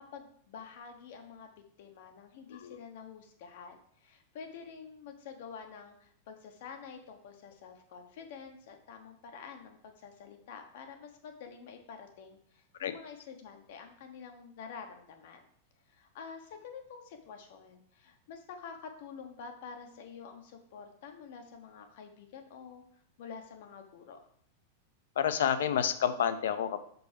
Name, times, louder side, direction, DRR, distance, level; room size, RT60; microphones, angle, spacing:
voice 1, 0.0-1.5 1.8-15.4 15.9-22.8 23.2-24.2, left 6 dB, 60° left, 5 dB, 1.3 m, -48 dB
voice 2, 25.2-26.8, left 9 dB, 85° left, 11 dB, 0.7 m, -29 dB
6.3 x 5.3 x 4.8 m, 0.66 s
supercardioid pair, 155°, 0 cm